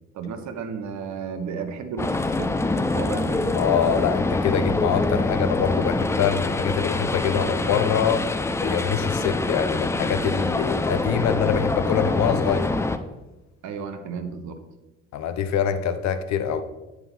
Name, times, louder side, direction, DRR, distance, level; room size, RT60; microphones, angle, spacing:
voice 1, 0.1-3.6 13.6-14.6, right 5 dB, 50° right, 8 dB, 1.0 m, -33 dB
sound 1, 2.0-13.0, left 2 dB, 10° left, 0.4 m, -25 dB
voice 2, 3.5-8.3 8.6-12.8 15.1-16.6, left 8 dB, 50° left, 10 dB, 0.8 m, -24 dB
8.8 x 4.7 x 4.2 m, 1.1 s
figure-of-eight pair, 50°, 37 cm